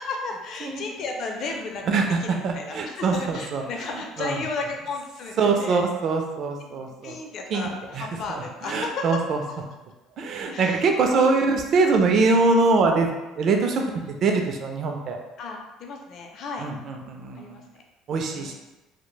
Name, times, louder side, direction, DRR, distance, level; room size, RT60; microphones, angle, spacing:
voice 1, 0.0-5.8 6.6-9.0 10.5-11.4 13.7-14.0 15.4-16.7 17.3-17.8 18.3-18.5, left 3 dB, 60° left, 2 dB, 0.4 m, -34 dB
voice 2, 1.9-3.6 4.2-4.4 5.4-7.1 7.5-7.7 7.9-9.4 10.2-15.2 16.6-17.6 18.1-18.5, right 3 dB, 55° right, 3 dB, 0.4 m, -23 dB
3.0 x 2.1 x 2.2 m, 1.0 s
supercardioid pair, 80°, 0 cm